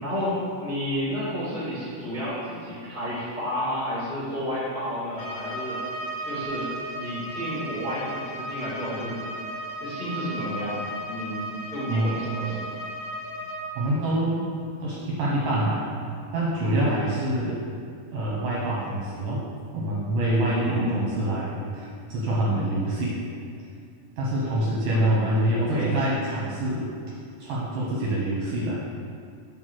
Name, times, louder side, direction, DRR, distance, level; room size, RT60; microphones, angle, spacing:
voice 1, 0.0-5.8 6.2-6.7 6.9-9.2 9.8-10.8 11.1-12.7 20.4-20.9 24.9-25.1 25.6-25.9, equal, 70° left, -9 dB, 0.5 m, -31 dB
Bowed string instrument, 5.2-13.7, right 1 dB, 90° left, 4.1 m, -35 dB
voice 2, 11.9-12.2 13.8-14.5 14.8-15.9 16.3-17.6 18.1-19.4 19.7-23.2 24.2-26.8 27.4-28.8, right 1 dB, 70° right, -6 dB, 2.1 m, -26 dB
8.5 x 3.8 x 6.3 m, 2.3 s
omnidirectional pair, 5.1 m